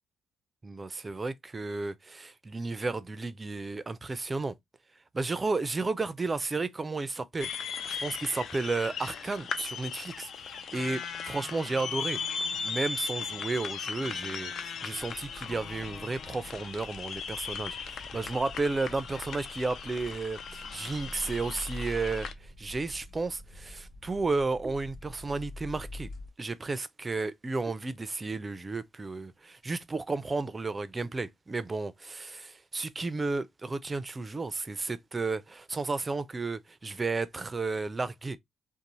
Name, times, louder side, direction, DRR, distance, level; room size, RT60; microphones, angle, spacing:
voice 1, 0.6-4.5 5.1-26.1 26.4-38.4, right 3 dB, 25° right, 0.4 m, -33 dB
sound 1, 7.4-22.3, left 6 dB, 65° left, 0.3 m, -38 dB
sound 2, 15.0-26.3, left 1 dB, 45° left, 0.8 m, -46 dB
2.5 x 2.0 x 2.9 m
cardioid pair, 90°, 0 cm